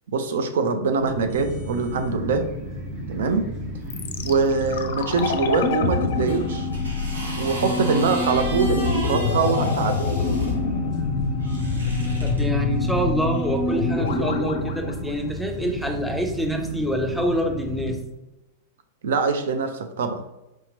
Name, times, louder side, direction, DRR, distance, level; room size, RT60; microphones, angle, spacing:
voice 1, 0.1-2.5 3.1-3.5 4.2-6.7 7.4-10.0 19.0-20.2, right 4 dB, 60° right, 8 dB, 0.4 m, -23 dB
sound 1, 1.0-18.0, equal, 35° right, 0.9 m, -33 dB
sound 2, 3.9-15.9 16.1-16.2, left 3 dB, 60° left, 0.4 m, -26 dB
sound 3, 6.3-10.5 11.4-12.4 13.3-13.5, right 2 dB, 75° right, 0.8 m, -36 dB
voice 2, 12.2-18.0, equal, ahead, 2 dB, 0.6 m, -26 dB
4.4 x 2.8 x 2.9 m, 0.96 s
figure-of-eight pair, 95°, 0 cm